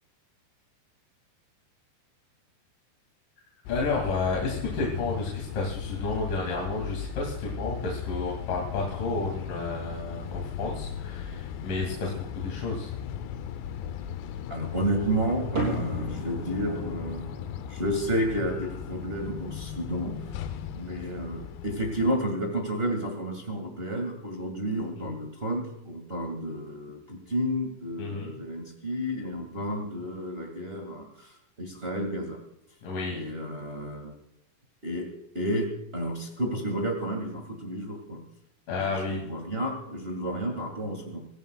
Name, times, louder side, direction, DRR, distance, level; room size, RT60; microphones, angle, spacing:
sound 1, 3.7-22.1, left 9 dB, 75° left, 2.8 m, -37 dB
voice 1, 3.7-12.9 28.0-28.4 32.8-33.2 38.7-39.2, left 3 dB, 50° left, -2 dB, 3.8 m, -31 dB
voice 2, 14.5-17.3 17.7-20.5 20.7-32.4 33.1-34.1 34.8-35.1 35.3-38.2 38.8-41.2, equal, 55° right, 1 dB, 0.6 m, -31 dB
sound 2, 15.6-22.3, right 2 dB, 30° right, 5.9 m, -38 dB
26.0 x 16.0 x 2.4 m, 0.78 s
omnidirectional pair, 5.4 m